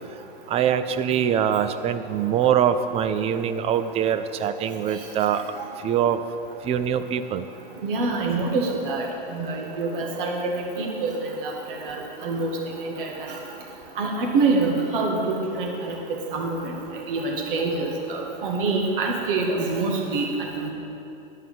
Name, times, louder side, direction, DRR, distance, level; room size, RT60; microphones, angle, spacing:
voice 1, 0.5-5.4 5.8-6.2 6.6-7.5, right 9 dB, 20° right, 11 dB, 0.4 m, -23 dB
voice 2, 7.8-13.4 14.0-15.9 16.3-16.7 17.1-20.3 20.6-20.7, right 3 dB, 60° right, -1 dB, 2.1 m, -26 dB
11.0 x 5.5 x 7.6 m, 2.9 s
hypercardioid pair, 120°, 29 cm